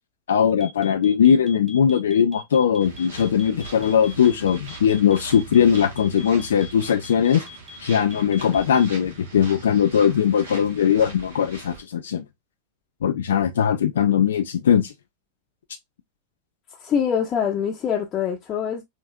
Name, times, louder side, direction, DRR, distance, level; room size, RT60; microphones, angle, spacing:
voice 1, 0.3-7.4 7.8-12.2 13.0-14.9, left 8 dB, 65° left, 0.4 m, -20 dB
sound 1, 0.6-9.0, left 4 dB, 15° right, 1.8 m, -42 dB
sound 2, 2.8-11.8, right 3 dB, 65° right, 1.5 m, -41 dB
voice 2, 16.8-18.8, left 8 dB, 30° left, 0.7 m, -24 dB
5.0 x 2.7 x 2.2 m
figure-of-eight pair, 90°, 0 cm